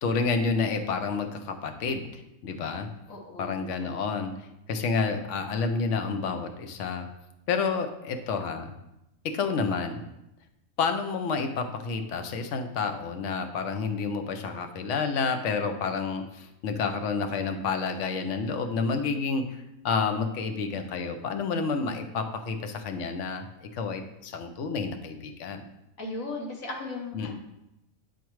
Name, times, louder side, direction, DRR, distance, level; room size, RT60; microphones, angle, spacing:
voice 1, 0.0-2.0 2.4-2.9 3.4-4.3 4.7-7.1 7.5-8.7 9.2-10.1 10.8-25.7 27.1-27.3, left 4 dB, 65° left, 6 dB, 1.0 m, -29 dB
voice 2, 3.1-3.5 3.8-4.1 26.0-27.3, left 2 dB, 90° left, 0 dB, 1.6 m, -37 dB
9.2 x 4.5 x 3.1 m, 0.88 s
omnidirectional pair, 1.4 m